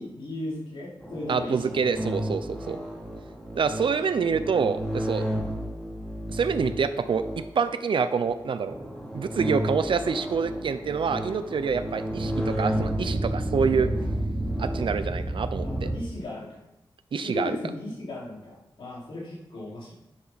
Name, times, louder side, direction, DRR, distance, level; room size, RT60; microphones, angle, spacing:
voice 1, 0.0-1.7 15.5-16.6 17.2-19.9, left 2 dB, 85° left, -6 dB, 4.7 m, -36 dB
sound 1, 1.0-7.6 8.2-8.3 8.7-16.0, right 1 dB, 10° left, 2.8 m, -31 dB
voice 2, 1.3-2.8 3.5-5.3 6.3-7.2 7.5-8.7 9.1-13.9 14.6-15.9 17.1-17.6, right 5 dB, 75° right, 11 dB, 0.8 m, -26 dB
11.5 x 10.5 x 4.2 m, 0.93 s
wide cardioid pair, 170°, 9 cm